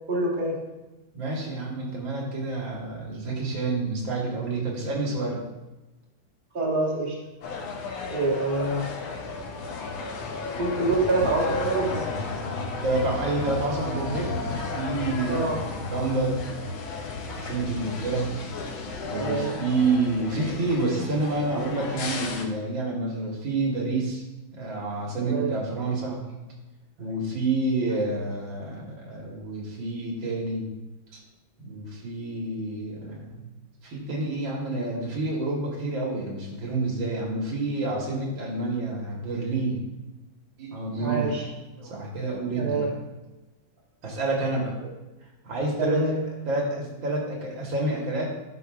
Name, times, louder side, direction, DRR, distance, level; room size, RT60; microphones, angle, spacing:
voice 1, 0.1-0.6 6.5-7.1 8.1-8.8 10.6-12.0 15.3-15.6 19.1-19.5 25.2-25.5 27.9-28.0 41.0-41.4 42.5-42.9 45.8-46.1, right 2 dB, 25° right, -5 dB, 1.7 m, -26 dB
voice 2, 1.1-5.4 12.2-12.4 12.8-14.4 14.7-16.4 17.4-18.3 19.1-24.2 24.5-26.2 27.0-30.6 31.1-31.2 31.6-33.5 33.8-39.8 40.6-41.4 41.8-42.9 44.0-44.7 45.4-46.2 46.5-48.3, right 2 dB, 70° right, -2 dB, 2.2 m, -28 dB
sound 1, 7.4-22.4, left 3 dB, 80° left, 1.7 m, -33 dB
12.0 x 5.8 x 2.5 m, 1.1 s
omnidirectional pair, 2.2 m